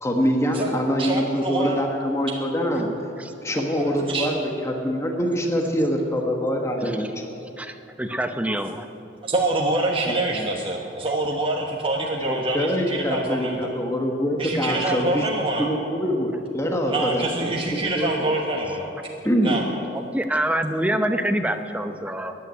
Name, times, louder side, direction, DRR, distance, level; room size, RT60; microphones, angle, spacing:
voice 1, 0.0-2.9 3.4-7.1 10.0-10.6 12.2-15.2 15.6-17.3 17.7-18.3 19.2-19.6, equal, 15° left, 2 dB, 1.3 m, -24 dB
voice 2, 1.0-1.8 3.7-4.3 9.2-13.7 14.4-15.7 16.9-18.9 19.4-19.6, right 2 dB, 30° right, -1 dB, 1.2 m, -26 dB
voice 3, 7.6-8.9 20.1-22.4, right 1 dB, 10° right, 7 dB, 0.8 m, -25 dB
14.5 x 9.9 x 9.6 m, 2.8 s
head